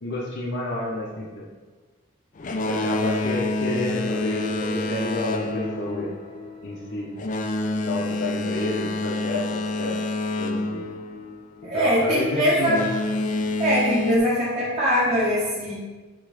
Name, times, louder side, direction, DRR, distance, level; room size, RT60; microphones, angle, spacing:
voice 1, 0.0-1.5 2.7-6.1 6.6-7.1 7.8-10.0 10.4-10.8 11.7-12.8, left 2 dB, 55° left, -4 dB, 0.9 m, -29 dB
Boat Water vehicle, 2.4-11.8 12.6-14.2, left 2 dB, 40° left, 0.4 m, -28 dB
sound 1, 3.2-7.7, right 3 dB, 60° right, 0.7 m, -40 dB
voice 2, 11.6-12.8 13.6-15.7, equal, 30° right, -9 dB, 1.2 m, -22 dB
7.4 x 3.1 x 4.8 m, 1.4 s
head